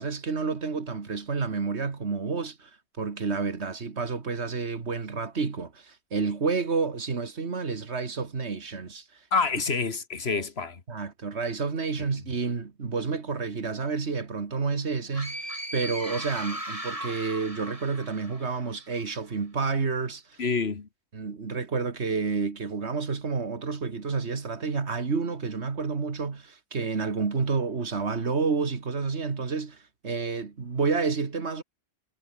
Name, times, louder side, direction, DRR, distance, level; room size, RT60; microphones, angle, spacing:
voice 1, 0.0-2.7 3.0-9.0 10.3-10.4 10.9-15.4 15.7-20.4 21.1-29.8 30.0-31.6, right 4 dB, 85° right, 2.2 m, -29 dB
voice 2, 9.3-10.8 20.4-20.9, left 4 dB, 70° left, 2.0 m, -27 dB
sound 1, 15.1-18.8, right 1 dB, 30° right, 7.1 m, -37 dB
omnidirectional pair, 1.1 m